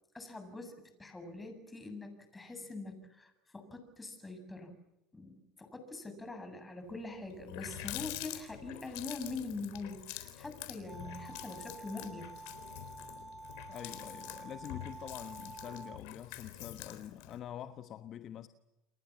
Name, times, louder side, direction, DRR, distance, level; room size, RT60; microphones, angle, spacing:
voice 1, 0.1-4.8 5.1-12.3, left 3 dB, 15° left, 7.5 m, -44 dB
Water tap faucet, 6.9-7.0 7.3-17.4, left 14 dB, 75° left, 3.8 m, -46 dB
sound 1, 10.9-16.0, right 3 dB, 10° right, 0.9 m, -49 dB
voice 2, 13.7-18.5, left 10 dB, 50° left, 1.2 m, -46 dB
29.5 x 23.0 x 7.4 m
supercardioid pair, 100°, 0 cm